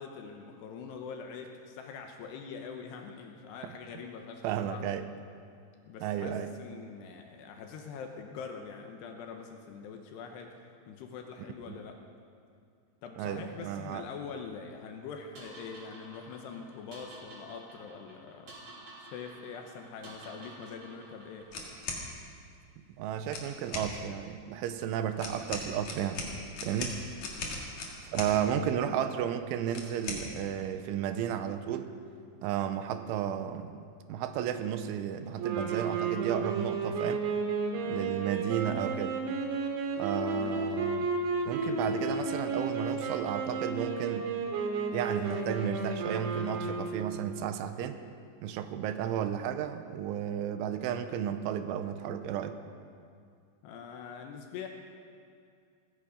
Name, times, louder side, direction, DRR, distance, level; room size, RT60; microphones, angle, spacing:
voice 1, 0.0-4.8 5.8-12.0 13.0-18.6 19.0-21.5 28.2-28.6 40.3-40.7 53.6-54.7, left 6 dB, 75° left, 4 dB, 2.8 m, -44 dB
voice 2, 4.4-5.1 6.0-6.5 11.7-11.8 13.2-14.0 22.8-26.2 26.6-27.0 28.0-31.9 32.4-37.3 37.9-39.2 40.0-41.1 41.5-44.3 44.9-48.0 48.4-52.6, right 9 dB, 90° right, 9 dB, 3.2 m, -33 dB
sound 1, 15.4-21.6, right 2 dB, 50° right, 5.0 m, -51 dB
sound 2, 21.5-22.0 23.2-23.9 25.2-28.3 29.7-30.2, left 3 dB, 50° left, 2.9 m, -38 dB
sound 3, 35.4-47.2, right 4 dB, 75° right, 3.9 m, -33 dB
18.0 x 15.0 x 5.1 m, 2.3 s
omnidirectional pair, 5.5 m